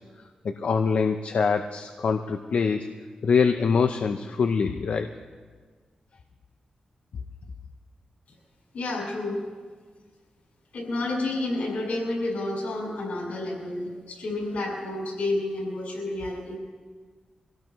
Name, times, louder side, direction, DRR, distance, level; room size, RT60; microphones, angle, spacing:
voice 1, 0.4-2.9 3.2-5.1, left 5 dB, 65° left, 6 dB, 0.6 m, -24 dB
voice 2, 8.7-9.4 10.7-16.6, left 2 dB, 85° left, -3 dB, 6.3 m, -30 dB
25.0 x 17.0 x 3.1 m, 1.5 s
wide cardioid pair, 120°, 2 cm